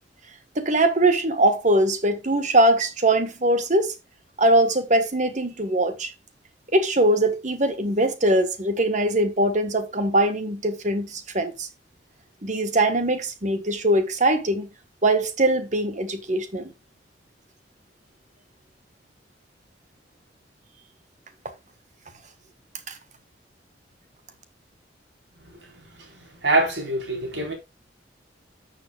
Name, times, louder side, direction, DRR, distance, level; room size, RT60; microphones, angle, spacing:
voice 1, 0.5-3.9 4.4-6.1 6.7-11.7 12.4-14.7 15.0-16.7 22.9-23.0, right 1 dB, 40° right, 1.5 m, -21 dB
voice 2, 26.4-27.5, right 2 dB, 75° right, 4.3 m, -23 dB
13.0 x 7.1 x 2.4 m
head